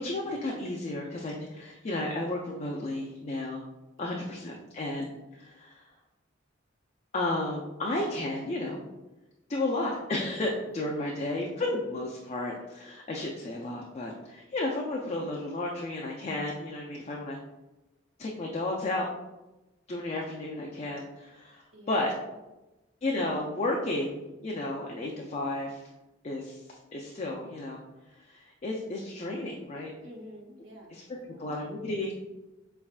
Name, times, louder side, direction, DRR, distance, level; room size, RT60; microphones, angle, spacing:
voice 1, 0.0-3.6 4.0-5.9 7.1-8.8 9.5-17.4 18.2-19.1 19.9-22.1 23.0-25.8 26.2-27.8 28.1-29.9 30.9-31.0 31.4-32.1, left 2 dB, 35° left, -1 dB, 0.4 m, -33 dB
voice 2, 4.0-4.4 10.5-10.8 21.7-22.2 30.0-31.5, equal, 70° right, 0 dB, 0.8 m, -50 dB
5.2 x 3.4 x 2.4 m, 1.0 s
head